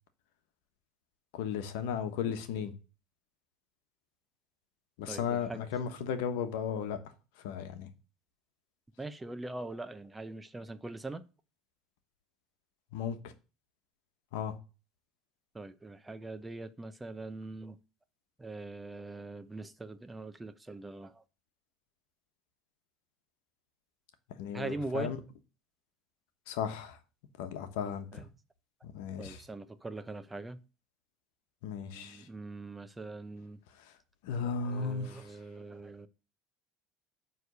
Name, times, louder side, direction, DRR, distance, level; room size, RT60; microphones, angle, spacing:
voice 1, 1.3-2.8 5.0-7.9 12.9-13.3 14.3-14.6 24.3-25.2 26.5-27.0 27.4-28.3 28.8-29.4 31.6-32.3 33.7-35.4, left 7 dB, 75° left, 1.1 m, -36 dB
voice 2, 5.1-5.6 9.0-11.2 15.5-17.8 18.4-21.2 24.5-25.1 28.1-28.2 29.2-30.6 31.9-33.6 34.7-36.1, right 2 dB, 15° right, 0.8 m, -42 dB
9.2 x 3.4 x 6.7 m
hypercardioid pair, 80°, 0 cm